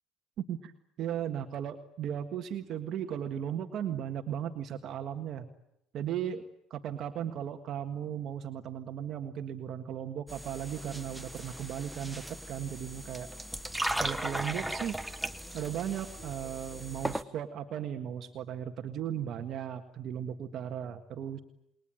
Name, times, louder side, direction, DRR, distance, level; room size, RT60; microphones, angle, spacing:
voice 1, 1.0-5.5 5.9-6.4 6.7-13.3 14.0-15.0 15.5-21.4, right 9 dB, 55° right, 5 dB, 1.6 m, -36 dB
sound 1, 10.3-17.2, right 1 dB, 5° right, 1.1 m, -37 dB
28.5 x 21.5 x 9.1 m, 0.83 s
cardioid pair, 140°, 0 cm